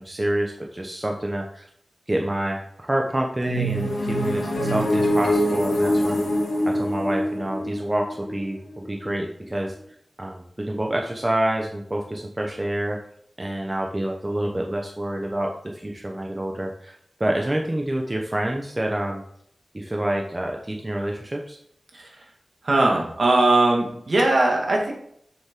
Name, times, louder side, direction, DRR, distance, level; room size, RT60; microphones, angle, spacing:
voice 1, 0.0-1.7 2.1-6.2 6.6-9.7 10.2-13.0 13.4-16.9 17.2-19.2 19.7-21.6, right 1 dB, 20° right, 1 dB, 0.8 m, -27 dB
sound 1, 3.4-9.2, equal, 85° left, 2.5 m, -24 dB
voice 2, 22.6-24.9, right 2 dB, 60° right, 0 dB, 2.0 m, -19 dB
7.1 x 6.6 x 3.7 m, 0.67 s
wide cardioid pair, 95°, 0 cm